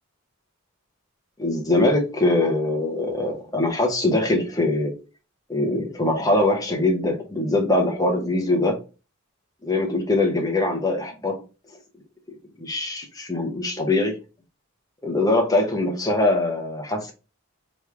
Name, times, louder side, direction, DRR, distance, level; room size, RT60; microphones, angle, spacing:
voice 1, 1.4-4.9 5.5-8.8 9.6-11.4 12.6-14.2 15.0-17.1, left 2 dB, 15° left, 0.9 m, -22 dB
3.6 x 3.1 x 3.4 m
head